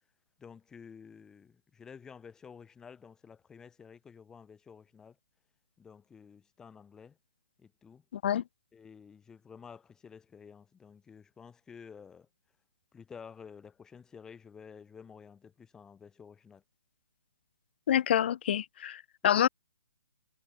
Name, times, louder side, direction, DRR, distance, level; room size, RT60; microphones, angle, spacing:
voice 1, 0.4-5.2 5.8-7.2 7.6-8.0 8.7-12.3 12.9-16.6 19.3-19.5, left 6 dB, 5° left, 4.7 m, -51 dB
voice 2, 8.1-8.4 17.9-19.5, left 10 dB, 30° left, 1.8 m, -27 dB
hypercardioid pair, 175°, 11 cm